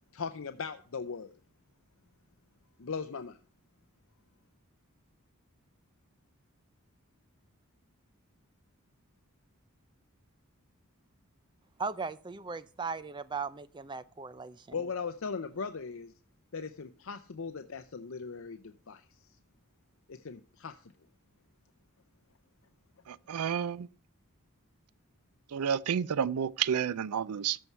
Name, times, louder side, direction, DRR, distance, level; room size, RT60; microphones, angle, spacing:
voice 1, 0.1-1.4 2.8-3.4 14.7-16.1 16.5-19.3 20.1-20.9, left 5 dB, 65° left, 0.6 m, -39 dB
voice 2, 11.8-14.8, right 4 dB, 20° right, 0.4 m, -38 dB
voice 3, 23.1-23.9 25.5-27.6, right 8 dB, 90° right, 0.4 m, -30 dB
14.0 x 4.6 x 5.5 m
head